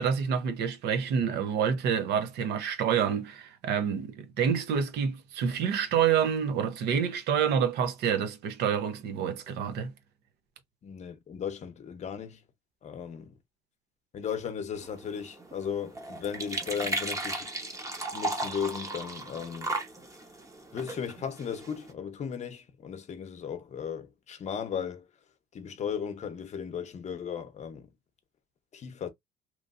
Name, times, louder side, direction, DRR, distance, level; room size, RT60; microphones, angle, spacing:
voice 1, 0.0-9.9, right 7 dB, 75° right, 0.7 m, -28 dB
voice 2, 10.8-12.4 12.8-13.3 14.1-17.5 18.1-19.8 20.7-25.1 25.5-27.9 28.7-29.1, left 7 dB, 40° left, 0.8 m, -36 dB
sound 1, 14.7-21.9, right 2 dB, 20° right, 0.9 m, -36 dB
3.0 x 2.6 x 2.4 m
cardioid pair, 110°, 17 cm